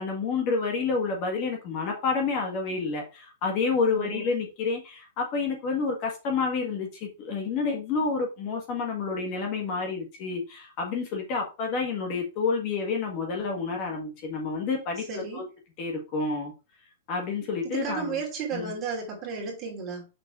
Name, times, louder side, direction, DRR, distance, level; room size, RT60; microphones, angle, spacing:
voice 1, 0.0-15.4 15.8-16.5 17.1-18.2 18.5-18.7, left 4 dB, 30° left, 1.6 m, -29 dB
voice 2, 15.1-15.4 17.7-20.1, right 5 dB, 20° right, 2.6 m, -33 dB
6.3 x 4.0 x 4.7 m
supercardioid pair, 170°, 0 cm